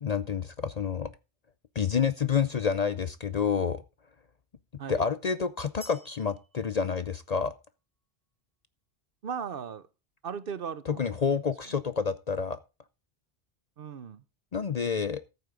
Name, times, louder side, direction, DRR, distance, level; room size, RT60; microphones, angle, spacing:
voice 1, 0.0-1.1 1.7-3.8 4.9-7.5 11.0-12.6 14.5-15.2, left 6 dB, 45° left, 0.6 m, -28 dB
sound 1, 5.8-7.8, right 1 dB, 10° right, 1.3 m, -53 dB
voice 2, 9.2-9.9 10.2-11.4 11.7-11.8 13.8-14.2, right 7 dB, 60° right, 0.9 m, -38 dB
14.0 x 8.3 x 3.7 m
omnidirectional pair, 1.1 m